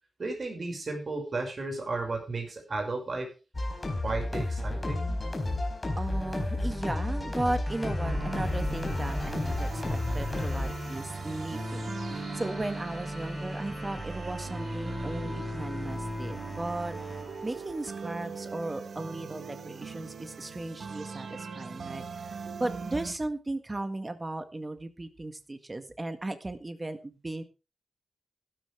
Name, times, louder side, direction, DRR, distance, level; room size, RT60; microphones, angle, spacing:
voice 1, 0.2-3.3 4.0-5.2, right 3 dB, 45° right, 3 dB, 5.9 m, -34 dB
sound 1, 3.5-10.7, left 2 dB, 20° left, 4.4 m, -31 dB
voice 2, 6.0-17.0 17.4-27.4, right 2 dB, 20° right, 8 dB, 1.8 m, -36 dB
sound 2, 7.7-18.6, equal, 5° right, 3.9 m, -38 dB
sound 3, 8.0-23.1, right 5 dB, 70° right, 1.7 m, -41 dB
14.5 x 13.0 x 3.5 m, 0.31 s
wide cardioid pair, 135°, 0 cm